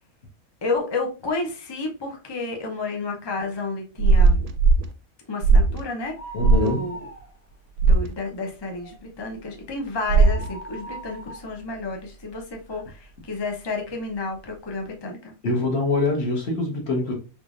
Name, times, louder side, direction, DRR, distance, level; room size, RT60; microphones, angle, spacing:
voice 1, 0.6-4.4 5.3-6.1 6.5-7.1 7.9-15.3, left 3 dB, 30° left, 0.4 m, -31 dB
sound 1, 4.0-4.9 5.4-5.8 6.4-6.7 7.8-8.1 10.1-10.5, right 3 dB, 85° right, 1.1 m, -17 dB
sound 2, 6.0-7.7 8.0-8.1 8.6-13.0 13.5-13.6 14.4-14.5 14.7-14.8, right 2 dB, 65° left, 1.6 m, -40 dB
voice 2, 6.3-6.9 15.4-17.1, left 2 dB, 50° left, 1.3 m, -24 dB
3.6 x 3.3 x 2.4 m
omnidirectional pair, 1.5 m